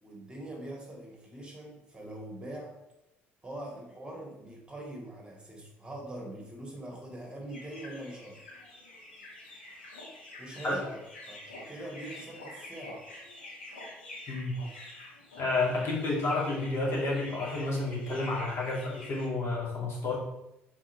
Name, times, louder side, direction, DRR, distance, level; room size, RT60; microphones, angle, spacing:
voice 1, 0.0-2.8 3.4-8.4 10.4-11.0 11.3-13.0, right 1 dB, 15° right, -1 dB, 2.2 m, -43 dB
sound 1, 7.5-19.3, left 1 dB, 80° left, 2.6 m, -47 dB
voice 2, 15.4-20.1, left 2 dB, 45° left, -4 dB, 2.4 m, -30 dB
6.2 x 4.4 x 4.6 m, 0.88 s
figure-of-eight pair, 55°, 6 cm